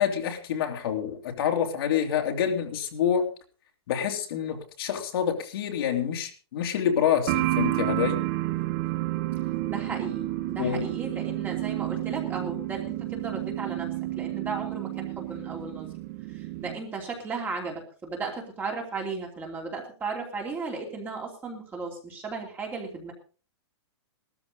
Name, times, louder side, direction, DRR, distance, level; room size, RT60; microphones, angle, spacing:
voice 1, 0.0-3.3 3.9-8.2 10.6-10.9, left 8 dB, 55° left, 2 dB, 3.0 m, -27 dB
sound 1, 7.3-16.8, right 17 dB, 40° right, 1.2 m, -30 dB
voice 2, 9.7-13.9 14.2-15.9 16.3-23.1, right 4 dB, 15° right, 1 dB, 2.9 m, -35 dB
17.5 x 13.5 x 3.9 m, 0.37 s
hypercardioid pair, 165°, 15 cm